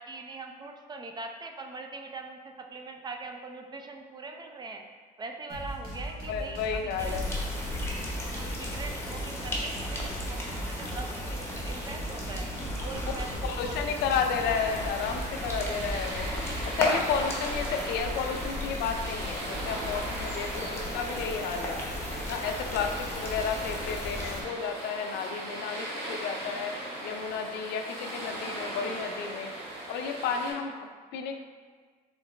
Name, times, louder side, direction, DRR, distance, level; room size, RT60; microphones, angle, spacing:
voice 1, 0.0-4.8 5.2-7.2 8.3-12.5 12.8-13.9, right 3 dB, 25° right, 4 dB, 0.3 m, -42 dB
sound 1, 5.5-16.8, right 1 dB, 60° right, 1.4 m, -38 dB
voice 2, 6.3-7.3 13.4-16.3 16.6-21.8 22.3-26.8 27.0-29.5 29.9-31.4, left 6 dB, 75° left, 5 dB, 0.4 m, -32 dB
sound 2, 7.0-24.4, left 1 dB, 15° left, 0.8 m, -36 dB
sound 3, 14.5-30.5, right 1 dB, 80° right, 1.2 m, -38 dB
3.7 x 3.1 x 3.1 m, 1.5 s
cardioid pair, 110°, 17 cm